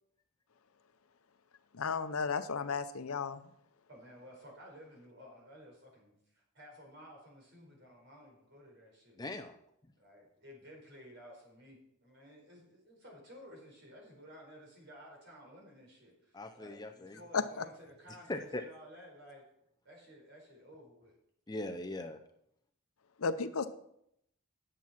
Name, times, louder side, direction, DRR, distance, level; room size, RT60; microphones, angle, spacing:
voice 1, 1.7-3.4 17.3-17.4 23.2-23.7, left 5 dB, 90° left, 11 dB, 0.7 m, -33 dB
voice 2, 3.9-9.2 10.0-19.4 19.8-21.1, equal, 55° right, -1 dB, 4.5 m, -54 dB
voice 3, 9.2-9.6 16.3-17.2 18.3-18.6 21.5-22.2, left 2 dB, 20° left, 6 dB, 0.6 m, -40 dB
10.0 x 7.3 x 5.9 m, 0.75 s
head